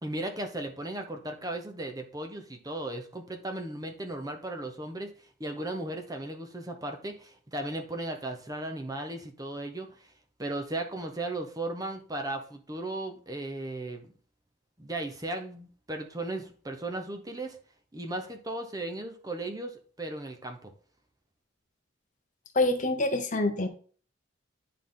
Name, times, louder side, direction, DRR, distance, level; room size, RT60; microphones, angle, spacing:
voice 1, 0.0-10.1 10.4-14.1 14.8-17.6 17.9-20.7, right 2 dB, 15° right, 5 dB, 0.8 m, -36 dB
voice 2, 22.5-23.7, left 2 dB, 35° left, 7 dB, 0.8 m, -26 dB
10.5 x 3.9 x 3.7 m, 0.43 s
head